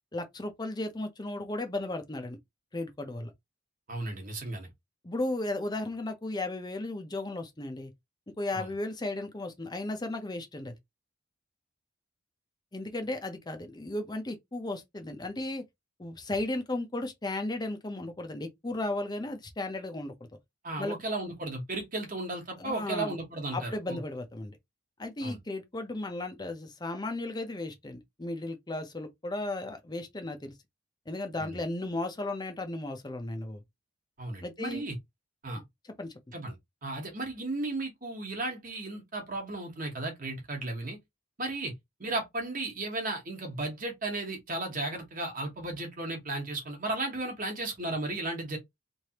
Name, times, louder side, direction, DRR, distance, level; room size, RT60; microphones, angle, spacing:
voice 1, 0.1-2.4 2.7-3.3 5.0-7.9 8.4-10.7 12.7-15.6 16.0-20.1 20.8-21.0 22.6-23.1 23.5-24.6 25.0-30.5 31.1-33.6 34.4-34.8 36.0-36.1, left 2 dB, 20° left, 0.6 m, -35 dB
voice 2, 3.9-4.7 8.5-8.7 20.6-24.0 25.2-25.4 31.4-31.6 34.2-35.0 35.4-35.6 36.3-36.5 36.8-41.0 41.4-41.7 42.0-48.6, right 2 dB, 40° right, 1.2 m, -35 dB
3.2 x 2.6 x 2.9 m
head